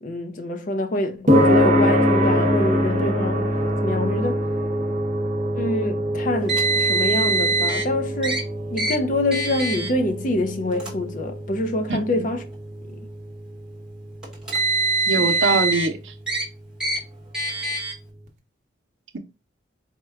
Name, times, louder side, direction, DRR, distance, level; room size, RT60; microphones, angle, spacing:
voice 1, 0.0-3.5 3.8-4.4 5.5-12.5 15.1-15.4, left 1 dB, 40° left, 0.5 m, -26 dB
sound 1, 1.3-17.8, equal, 40° right, 0.8 m, -25 dB
Car, 6.5-7.8 8.2-8.4 8.8-8.9 9.3-9.9 10.7-10.9 11.9-12.0 14.2-15.9 16.3-16.4 16.8-17.0 17.3-17.9, right 3 dB, 5° right, 1.0 m, -23 dB
voice 2, 11.9-12.2 15.1-16.1, right 3 dB, 75° right, 0.7 m, -23 dB
4.3 x 2.2 x 3.5 m
head